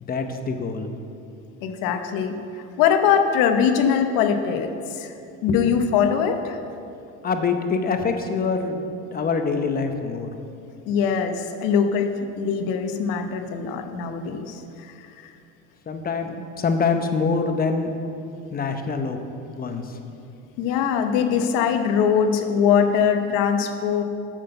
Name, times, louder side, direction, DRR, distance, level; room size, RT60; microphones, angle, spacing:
voice 1, 0.0-0.9 5.5-5.6 7.2-10.3 15.9-17.9 18.5-19.2 19.5-19.8, left 4 dB, 25° left, 6 dB, 0.8 m, -25 dB
voice 2, 1.6-2.3 2.8-5.1 5.4-6.6 10.9-14.9 15.2-15.3 20.6-24.0, left 7 dB, 70° left, 6 dB, 0.9 m, -22 dB
8.0 x 6.4 x 6.6 m, 2.6 s
supercardioid pair, 115°, 34 cm